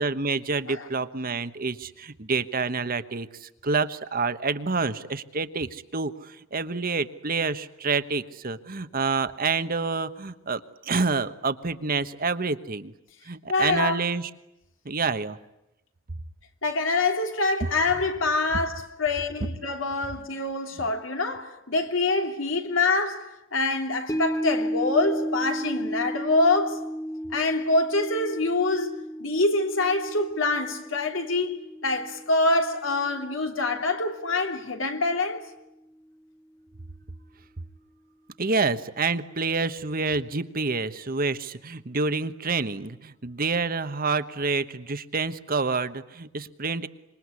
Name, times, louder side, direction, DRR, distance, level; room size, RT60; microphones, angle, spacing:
voice 1, 0.0-12.9 13.2-14.3 14.8-15.4 38.4-46.9, right 4 dB, 50° right, 1.2 m, -28 dB
voice 2, 13.5-14.0 16.6-26.8 27.3-35.4, left 2 dB, 75° left, 3.0 m, -25 dB
sound 1, 24.1-34.5 34.8-34.9, equal, 20° left, 1.2 m, -34 dB
26.5 x 23.0 x 9.7 m
head